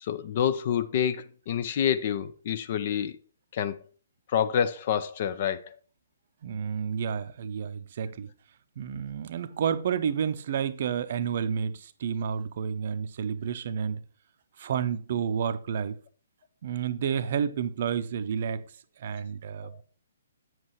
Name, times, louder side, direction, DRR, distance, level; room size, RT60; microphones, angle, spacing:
voice 1, 0.0-3.2 3.5-3.8 4.3-5.7 19.6-19.8, left 9 dB, 40° left, 0.6 m, -28 dB
voice 2, 6.4-8.3 8.8-14.0 14.6-16.0 16.6-18.6 19.0-19.8, right 7 dB, 45° right, 0.7 m, -30 dB
8.0 x 7.6 x 3.1 m
figure-of-eight pair, 130°, 0 cm